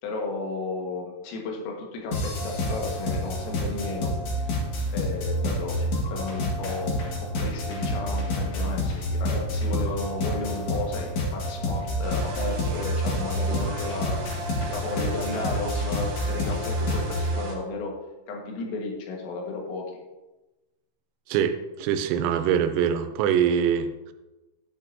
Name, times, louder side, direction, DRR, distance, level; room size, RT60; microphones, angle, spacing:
voice 1, 0.0-4.6 4.9-14.2 14.7-18.0 18.3-19.9, left 3 dB, 80° left, 0 dB, 4.3 m, -33 dB
sound 1, 2.1-17.4, left 1 dB, 60° left, 2.0 m, -28 dB
sound 2, 12.0-17.6, right 2 dB, 60° right, 3.2 m, -38 dB
voice 2, 21.3-24.1, right 8 dB, 90° right, 9 dB, 3.5 m, -24 dB
11.5 x 10.5 x 2.8 m, 1.1 s
omnidirectional pair, 6.0 m